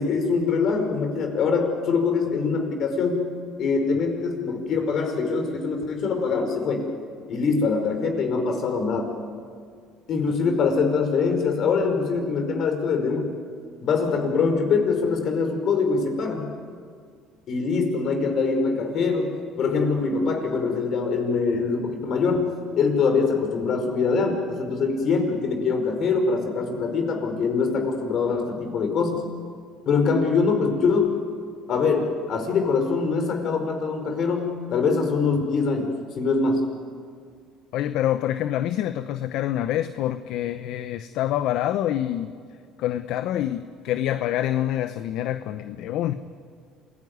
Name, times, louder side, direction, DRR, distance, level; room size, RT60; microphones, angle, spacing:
voice 1, 0.0-3.2 3.6-6.9 7.3-9.1 10.1-13.3 13.8-16.5 17.5-22.5 22.7-29.2 29.8-31.2 31.7-36.7, left 4 dB, 55° left, 5 dB, 5.1 m, -23 dB
voice 2, 37.7-42.3 42.8-46.1, left 12 dB, 70° left, 11 dB, 0.8 m, -26 dB
27.0 x 17.5 x 9.6 m, 2.1 s
supercardioid pair, 100°, 0 cm